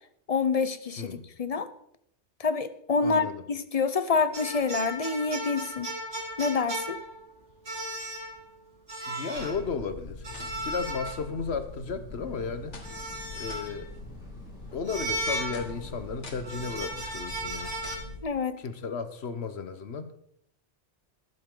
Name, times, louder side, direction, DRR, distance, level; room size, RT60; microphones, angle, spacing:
voice 1, 0.3-1.7 2.4-5.9 6.4-7.0 18.2-18.5, left 5 dB, 35° left, 12 dB, 0.7 m, -27 dB
voice 2, 3.0-3.4 9.1-10.2 10.6-12.8 13.3-13.9 14.7-17.7 18.6-20.1, left 5 dB, 65° left, 10 dB, 1.3 m, -34 dB
sound 1, 4.3-7.3 7.7-8.5 8.9-9.6 10.2-11.5 12.8-13.8 14.9-16.0 16.4-18.0, right 1 dB, 85° right, 2.9 m, -35 dB
sound 2, 9.3-18.2, left 2 dB, 85° left, 1.9 m, -43 dB
sound 3, 12.1-17.0, equal, 5° right, 4.5 m, -52 dB
20.5 x 7.9 x 3.8 m, 0.70 s
omnidirectional pair, 1.2 m